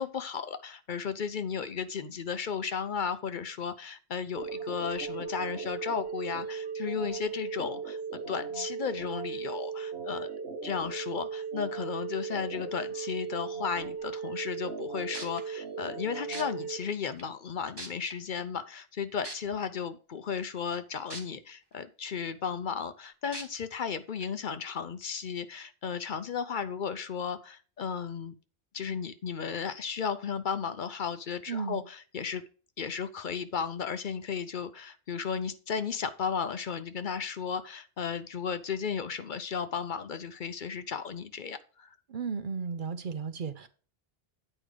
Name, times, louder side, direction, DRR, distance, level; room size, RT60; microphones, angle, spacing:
voice 1, 0.0-10.3 10.6-28.3 28.7-32.4 32.8-41.9, left 6 dB, 55° left, 0.7 m, -34 dB
sound 1, 4.4-16.8, right 6 dB, 75° right, 1.3 m, -37 dB
sound 2, 14.8-14.9 15.1-15.4 16.3-16.4 17.2-17.3 17.8-18.1 19.2-19.4 21.1-21.2 21.7-21.8 23.3-23.4 24.2-24.3, right 2 dB, 25° right, 1.4 m, -39 dB
voice 2, 31.5-31.8 42.1-43.7, right 5 dB, 55° right, 0.9 m, -34 dB
8.7 x 4.9 x 5.0 m
omnidirectional pair, 1.0 m